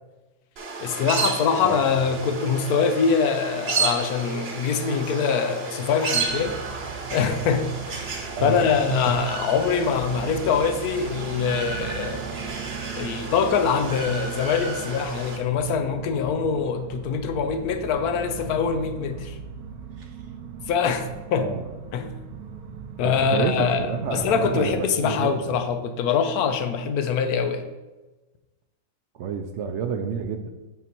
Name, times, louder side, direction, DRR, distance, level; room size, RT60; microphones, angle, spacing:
sound 1, 0.6-15.4, right 4 dB, 50° right, 1.0 m, -32 dB
voice 1, 0.8-6.6 7.1-12.2 12.9-19.4 20.7-21.5 21.9-22.1 23.0-27.6, left 6 dB, 85° left, 8 dB, 1.2 m, -24 dB
voice 2, 1.6-2.0 8.4-8.7 20.0-20.1 21.4-21.7 23.0-25.6 29.2-30.5, right 6 dB, 65° right, 6 dB, 0.7 m, -29 dB
sound 2, 6.2-24.8, right 7 dB, 85° right, 1.2 m, -39 dB
8.2 x 4.1 x 4.4 m, 1.2 s
omnidirectional pair, 1.5 m